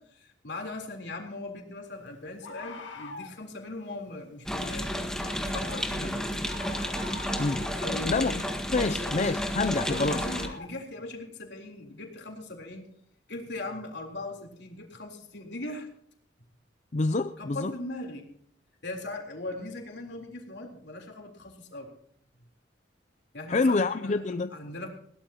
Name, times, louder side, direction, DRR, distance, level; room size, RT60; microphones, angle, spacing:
voice 1, 0.0-6.3 7.8-8.4 8.9-9.3 9.9-12.9 13.3-15.9 17.4-18.3 18.8-21.9 23.3-24.2 24.5-24.9, left 2 dB, 65° left, 3.8 m, -39 dB
Bird, 0.7-0.8 2.4-3.4 5.6-5.9 6.4-7.8 9.8-10.7, left 3 dB, 90° left, 1.8 m, -42 dB
sound 1, 4.5-10.5, equal, 5° left, 1.7 m, -31 dB
voice 2, 8.1-8.4 8.7-10.2 16.9-17.7 23.5-24.5, left 3 dB, 40° left, 0.5 m, -27 dB
21.0 x 17.0 x 3.0 m
head